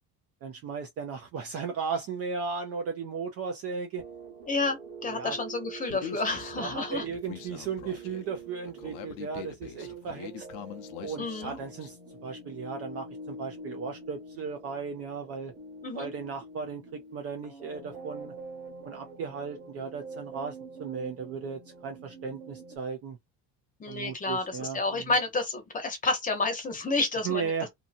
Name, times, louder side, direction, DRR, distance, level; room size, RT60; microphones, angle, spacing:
voice 1, 0.4-4.0 5.1-5.4 6.6-10.5 11.0-12.0 12.2-15.5 16.0-18.3 18.8-23.2 23.9-25.1 27.2-27.7, right 5 dB, 35° right, 0.4 m, -36 dB
sound 1, 4.0-22.8, right 3 dB, 20° right, 1.0 m, -45 dB
voice 2, 4.5-7.0 11.2-11.6 15.8-16.1 23.8-27.5, left 3 dB, 20° left, 0.8 m, -30 dB
Human voice, 5.9-11.9, left 9 dB, 85° left, 0.7 m, -43 dB
2.8 x 2.6 x 2.5 m
cardioid pair, 165°, 46 cm